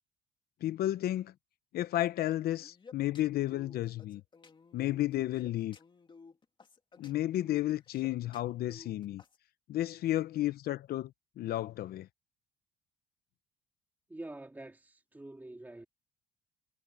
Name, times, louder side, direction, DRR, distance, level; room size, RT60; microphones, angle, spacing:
voice 1, 0.6-1.3 1.7-4.2 4.7-5.8 7.0-9.2 9.7-12.1, left 14 dB, 65° left, 0.8 m, -32 dB
sound 1, 2.5-9.4, left 4 dB, 30° left, 2.3 m, -55 dB
voice 2, 14.1-15.8, right 2 dB, 10° right, 3.2 m, -46 dB
cardioid pair, 110°, 17 cm